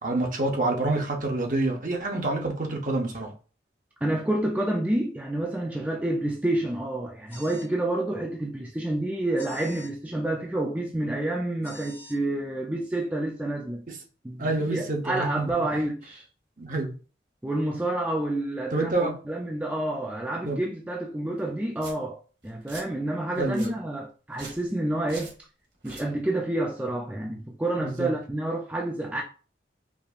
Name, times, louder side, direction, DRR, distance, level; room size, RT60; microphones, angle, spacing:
voice 1, 0.0-3.3 13.9-14.0 14.4-15.5 16.6-16.9 18.7-19.1 20.4-20.6 23.4-23.7 27.8-28.1, right 2 dB, 45° right, 0.8 m, -27 dB
voice 2, 4.0-13.8 14.2-16.2 17.4-25.3 25.8-29.2, right 1 dB, 10° right, 0.4 m, -29 dB
sound 1, 7.3-7.7 9.4-9.9 11.6-12.2, left 2 dB, 15° left, 0.8 m, -46 dB
Domestic sounds home sounds, 21.4-21.5 21.8-21.9 22.4-22.8 23.3-23.7 24.3-24.6 25.1-25.3 25.7-26.0, right 3 dB, 75° right, 1.6 m, -43 dB
4.9 x 2.7 x 2.5 m
head